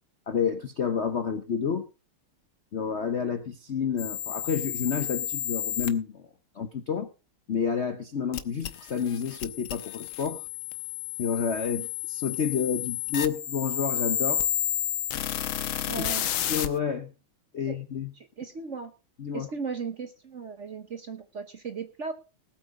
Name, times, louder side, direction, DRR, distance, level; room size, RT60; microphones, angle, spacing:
voice 1, 0.3-1.9 2.7-6.3 6.5-7.1 7.5-10.4 11.2-14.5 16.5-17.1 17.5-18.1 19.2-19.5, left 6 dB, 55° left, 0.8 m, -29 dB
sound 1, 4.0-5.9 8.3-16.7, left 11 dB, 75° left, 1.7 m, -31 dB
voice 2, 15.9-16.3 17.7-17.8 18.1-18.9 19.3-22.1, right 5 dB, 45° right, 1.0 m, -36 dB
19.0 x 8.4 x 3.7 m
omnidirectional pair, 2.3 m